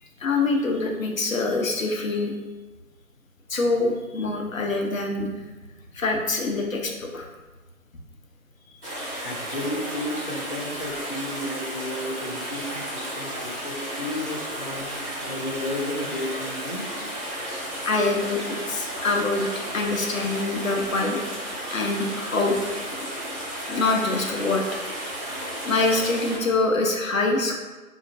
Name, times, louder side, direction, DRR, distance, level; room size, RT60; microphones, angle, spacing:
voice 1, 0.2-2.3 3.5-5.3 5.9-7.3 17.8-19.4 19.7-21.2 21.7-22.6 23.7-24.6 25.4-27.6, left 3 dB, 65° left, 1 dB, 0.9 m, -25 dB
sound 1, 8.8-26.4, right 1 dB, 5° right, 0.9 m, -33 dB
voice 2, 9.2-17.1, left 1 dB, 35° left, 0 dB, 0.5 m, -33 dB
5.1 x 2.9 x 2.6 m, 1.2 s
figure-of-eight pair, 150°, 44 cm